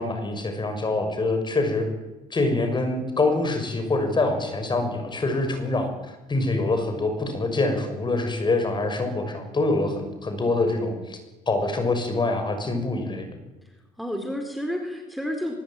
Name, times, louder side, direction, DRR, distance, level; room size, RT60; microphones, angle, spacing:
voice 1, 0.0-1.8 2.3-5.9 6.3-11.2 11.5-13.3, left 2 dB, 25° left, 7 dB, 6.5 m, -25 dB
voice 2, 13.6-15.5, equal, ahead, 3 dB, 4.3 m, -31 dB
23.5 x 22.0 x 9.2 m, 1.1 s
cardioid pair, 110°, 17 cm